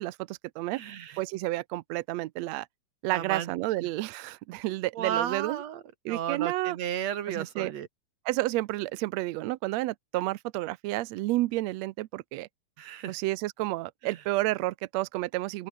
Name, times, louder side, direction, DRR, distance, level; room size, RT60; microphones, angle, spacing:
voice 1, 0.0-0.8 1.2-2.7 3.0-5.6 6.0-6.8 7.3-7.7 8.2-12.5 13.1-15.7, right 18 dB, 80° right, 1.5 m, -30 dB
voice 2, 0.7-1.2 3.1-3.9 4.9-5.8 6.1-7.9 12.8-13.1 14.0-14.2, right 10 dB, 60° right, 2.6 m, -34 dB
open air
omnidirectional pair, 3.8 m